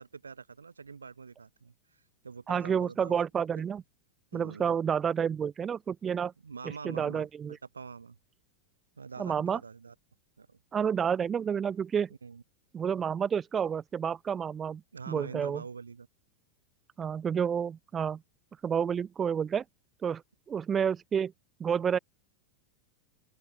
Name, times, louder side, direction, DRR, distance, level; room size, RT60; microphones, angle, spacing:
voice 1, 0.0-3.2 4.3-4.7 6.4-8.2 9.0-9.9 10.4-10.6 12.2-12.4 14.9-16.1, right 5 dB, 75° right, 1.7 m, -45 dB
voice 2, 2.5-3.8 4.3-6.3 6.6-7.6 9.2-9.6 10.7-12.1 12.7-14.8 15.1-15.6 17.0-18.2 18.6-19.6 20.0-20.2 20.5-21.3 21.6-22.0, right 7 dB, 20° right, 1.4 m, -29 dB
open air
figure-of-eight pair, 90°, 0 cm